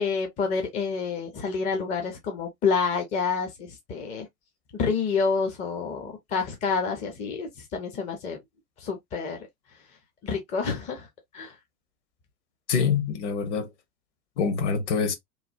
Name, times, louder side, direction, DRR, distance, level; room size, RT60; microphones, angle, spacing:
voice 1, 0.0-4.3 4.7-8.4 8.8-9.4 10.2-11.1 11.3-11.5, left 5 dB, 15° left, 0.5 m, -28 dB
voice 2, 12.7-13.7 14.4-15.1, left 6 dB, 50° left, 1.0 m, -25 dB
3.1 x 2.1 x 2.6 m
figure-of-eight pair, 95°, 46 cm